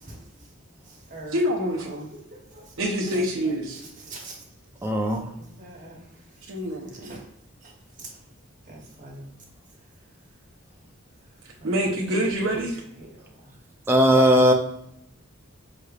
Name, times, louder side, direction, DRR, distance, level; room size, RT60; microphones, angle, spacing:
voice 1, 1.3-2.1 2.8-3.8 6.5-7.2 11.6-12.8, equal, 70° right, -3 dB, 0.7 m, -26 dB
voice 2, 2.3-2.6 3.1-3.2 4.0-4.4 5.4-6.0 7.0-7.2 8.7-9.3 11.6-11.7 14.2-14.4, right 2 dB, 40° right, -1 dB, 1.0 m, -42 dB
voice 3, 4.8-5.2 13.9-14.5, equal, 10° right, 2 dB, 0.4 m, -17 dB
5.8 x 3.2 x 2.3 m, 0.76 s
head